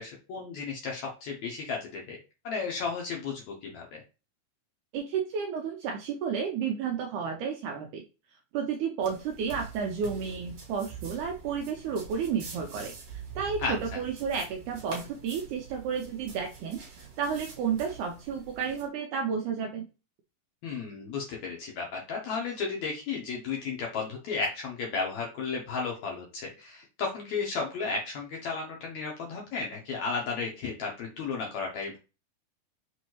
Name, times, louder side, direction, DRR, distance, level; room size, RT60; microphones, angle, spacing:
voice 1, 0.0-2.2 2.4-4.0 13.6-13.8 20.6-32.0, left 4 dB, 70° left, -1 dB, 1.8 m, -34 dB
voice 2, 4.9-8.0 8.5-19.8, right 6 dB, 85° right, 3 dB, 1.8 m, -32 dB
sound 1, 9.0-18.9, right 6 dB, 55° right, 2.4 m, -45 dB
6.1 x 2.7 x 3.0 m, 0.31 s
omnidirectional pair, 4.1 m